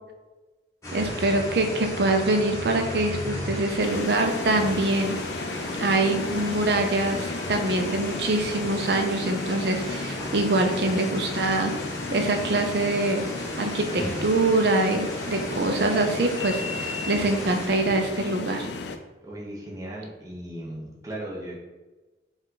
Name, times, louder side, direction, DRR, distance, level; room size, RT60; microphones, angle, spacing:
sound 1, 0.8-17.7, left 1 dB, 15° left, 0.9 m, -35 dB
voice 1, 0.9-5.2 5.8-11.7 12.1-13.3 13.6-18.7, right 2 dB, 60° right, 4 dB, 0.5 m, -24 dB
sound 2, 3.8-19.0, left 3 dB, 65° left, 0.4 m, -34 dB
voice 2, 19.2-21.5, right 1 dB, 20° right, -4 dB, 0.8 m, -37 dB
5.2 x 2.4 x 3.8 m, 1.2 s
head